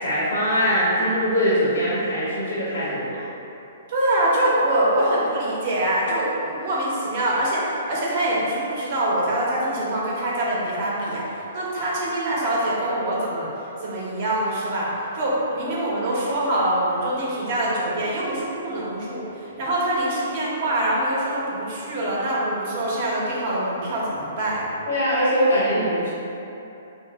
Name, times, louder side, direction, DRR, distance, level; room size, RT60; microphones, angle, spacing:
voice 1, 0.0-3.2 24.9-26.1, equal, 80° left, -10 dB, 0.9 m, -22 dB
voice 2, 3.9-13.5 13.8-24.7, right 1 dB, 50° right, -6 dB, 0.9 m, -24 dB
2.8 x 2.6 x 3.5 m, 2.9 s
hypercardioid pair, 145°, 0 cm